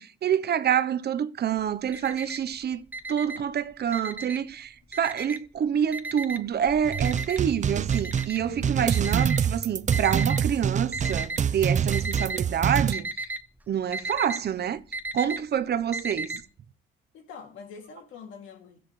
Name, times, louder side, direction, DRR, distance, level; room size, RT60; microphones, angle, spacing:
voice 1, 0.2-2.8 3.1-13.3 13.7-14.8 15.1-16.4, right 9 dB, 55° right, 0.9 m, -27 dB
Alarm, 1.6-2.5 2.9-4.5 4.9-5.6 5.9-10.4 10.9-11.5 11.8-12.4 12.7-16.4, right 2 dB, 10° right, 1.0 m, -35 dB
sound 1, 6.9-12.9, right 7 dB, 35° right, 0.5 m, -26 dB
voice 2, 8.5-8.9 12.5-12.6 17.1-18.8, left 6 dB, 80° left, 2.7 m, -45 dB
16.5 x 14.0 x 3.3 m
cardioid pair, 90°, 20 cm